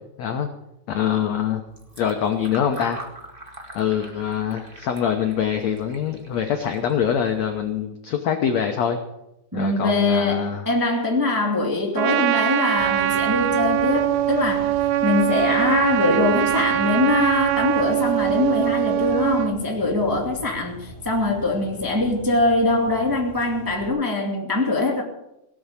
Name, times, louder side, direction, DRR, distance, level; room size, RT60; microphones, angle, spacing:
voice 1, 0.9-1.6 2.0-3.0 3.7-9.0 9.5-10.7, left 8 dB, 75° left, 5 dB, 1.5 m, -24 dB
Fill (with liquid), 1.7-7.8, right 1 dB, 30° right, 0.9 m, -44 dB
voice 2, 9.5-25.0, left 2 dB, 10° right, 0 dB, 1.4 m, -22 dB
Trumpet, 12.0-19.5, right 13 dB, 75° right, 2.8 m, -22 dB
sound 1, 12.8-23.9, equal, 15° left, 3.3 m, -42 dB
18.0 x 7.8 x 8.5 m, 0.88 s
omnidirectional pair, 4.6 m